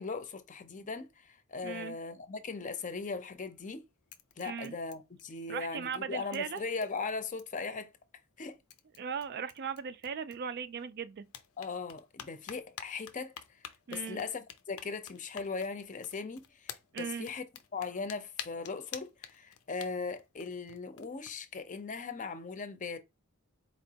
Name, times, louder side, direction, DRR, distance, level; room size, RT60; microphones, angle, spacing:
voice 1, 0.0-3.8 4.4-7.9 8.4-8.6 11.6-13.3 13.9-17.5 17.7-23.0, left 4 dB, 35° left, 0.6 m, -39 dB
voice 2, 1.6-2.0 4.4-4.7 5.5-6.6 9.0-11.3 13.9-14.2 16.9-17.3, right 6 dB, 50° right, 0.4 m, -38 dB
sound 1, 3.2-3.7 4.1-5.6 5.9-6.0 6.3-7.7 8.4-8.5 8.7-10.8 11.2-21.4, left 9 dB, 90° left, 0.6 m, -50 dB
4.4 x 3.0 x 2.8 m
head